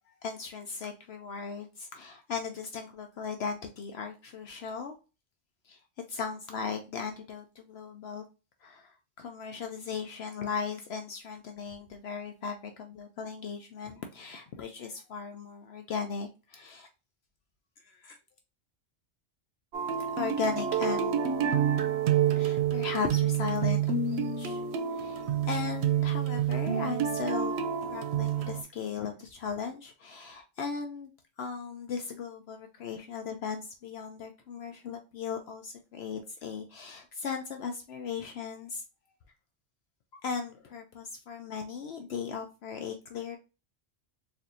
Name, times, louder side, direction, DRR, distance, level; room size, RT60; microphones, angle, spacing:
voice 1, 0.2-5.0 5.6-5.8 6.1-8.2 8.6-16.9 17.8-18.2 20.0-21.2 22.3-24.6 24.9-27.6 27.9-31.1 31.4-38.8 40.1-43.4, left 6 dB, 70° left, 5 dB, 0.8 m, -37 dB
sound 1, 19.7-28.6, right 8 dB, 70° right, 0.8 m, -28 dB
4.3 x 2.6 x 2.5 m, 0.30 s
omnidirectional pair, 1.2 m